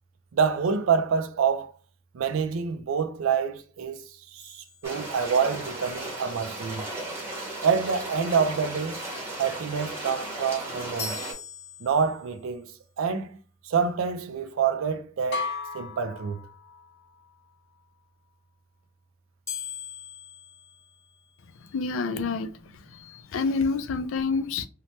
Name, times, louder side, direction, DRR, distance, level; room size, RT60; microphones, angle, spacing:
voice 1, 0.3-1.7 2.1-4.0 4.3-6.9 7.6-9.0 9.4-11.2 11.8-13.3 13.6-16.4, right 6 dB, 90° right, 0.4 m, -27 dB
sound 1, 4.4-5.7 11.0-12.5 19.5-21.6, left 6 dB, 15° left, 0.5 m, -41 dB
sound 2, 4.8-11.3, right 1 dB, 15° right, 0.8 m, -36 dB
sound 3, 15.3-17.1, left 4 dB, 55° left, 0.8 m, -35 dB
voice 2, 21.7-24.7, left 4 dB, 80° left, 0.4 m, -28 dB
2.8 x 2.1 x 3.0 m
head